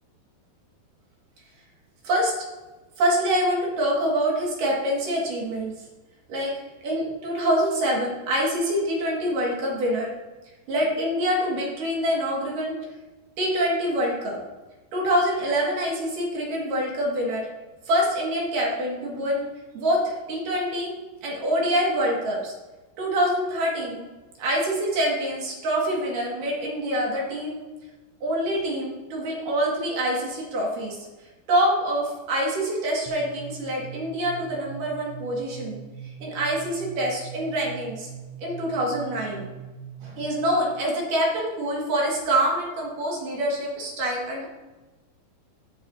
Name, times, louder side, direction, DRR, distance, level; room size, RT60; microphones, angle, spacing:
voice 1, 2.0-2.3 3.0-5.7 6.3-10.1 10.7-12.7 13.4-14.4 14.9-17.5 17.8-19.5 19.7-20.9 21.2-22.5 23.0-24.0 24.4-27.6 28.2-31.0 31.5-35.8 36.2-38.1 38.4-39.5 40.0-44.5, equal, 55° right, -3 dB, 3.1 m, -25 dB
sound 1, 33.1-40.6, right 7 dB, 80° right, 3.1 m, -41 dB
16.5 x 7.1 x 2.8 m, 1.2 s
omnidirectional pair, 5.1 m